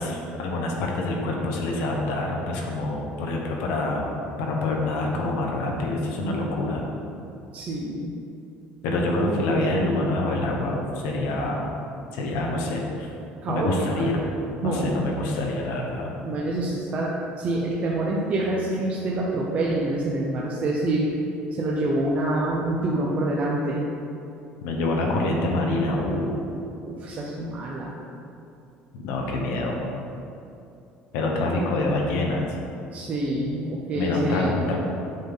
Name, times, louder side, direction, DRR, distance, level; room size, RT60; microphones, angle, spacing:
voice 1, 0.0-4.1 4.4-6.8 8.8-11.7 12.1-13.1 13.5-14.2 14.6-16.2 24.6-26.4 28.9-29.8 31.1-32.5 33.9-34.8, left 2 dB, 90° left, -1 dB, 1.0 m, -26 dB
voice 2, 7.5-8.1 8.9-9.0 12.3-12.5 13.4-14.1 14.6-15.0 16.2-21.1 21.5-23.9 26.8-27.9 32.9-34.6, right 1 dB, 35° right, -3 dB, 0.6 m, -26 dB
7.5 x 3.7 x 3.8 m, 2.6 s
cardioid pair, 135°, 4 cm